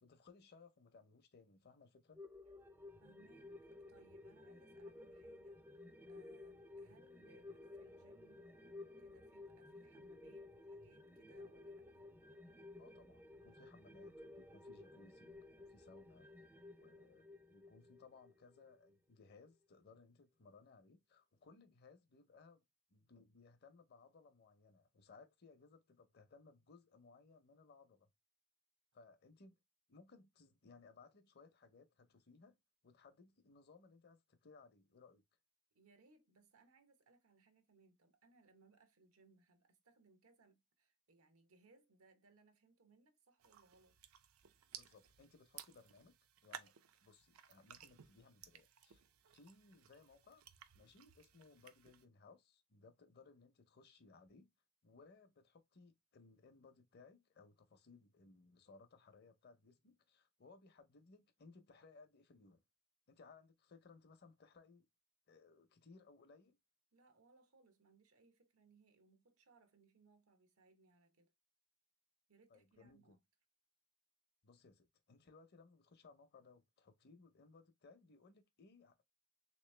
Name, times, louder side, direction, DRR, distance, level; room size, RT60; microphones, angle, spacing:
voice 1, 0.0-2.2 12.8-16.3 16.8-22.6 22.9-28.1 28.9-29.6 29.9-32.6 32.8-35.2 44.7-46.2 46.4-46.7 47.0-49.0 49.3-50.4 50.7-54.5 54.8-62.6 63.1-64.9 65.3-66.6 72.5-73.2 74.4-79.0, left 4 dB, 50° left, 0.6 m, -63 dB
sound 1, 2.1-18.9 19.3-19.4, left 2 dB, 10° right, 0.3 m, -55 dB
voice 2, 3.0-12.0 35.7-44.0 66.9-71.3 72.3-73.2, right 3 dB, 90° right, 0.9 m, -70 dB
sound 2, 43.4-52.1, right 9 dB, 75° right, 0.4 m, -58 dB
3.4 x 3.0 x 3.2 m
head